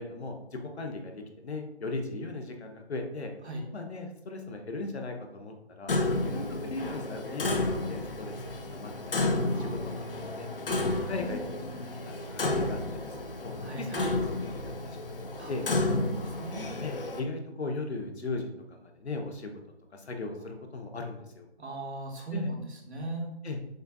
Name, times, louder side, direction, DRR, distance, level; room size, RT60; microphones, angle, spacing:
voice 1, 0.0-3.3 3.7-8.3 8.7-10.5 11.0-11.7 12.1-12.8 13.4-15.2 15.5-15.6 16.8-19.5 19.9-21.5 22.3-22.5 23.4-23.6, left 3 dB, 75° left, 3 dB, 0.9 m, -38 dB
Clock, 5.9-17.2, left 2 dB, 55° left, 0.6 m, -31 dB
voice 2, 9.5-10.2 13.6-14.1 15.4-15.5 16.4-16.7 21.6-22.6 22.9-23.3, right 1 dB, 85° right, 0 dB, 1.3 m, -38 dB
6.4 x 2.6 x 2.3 m, 0.87 s
hypercardioid pair, 175°, 33 cm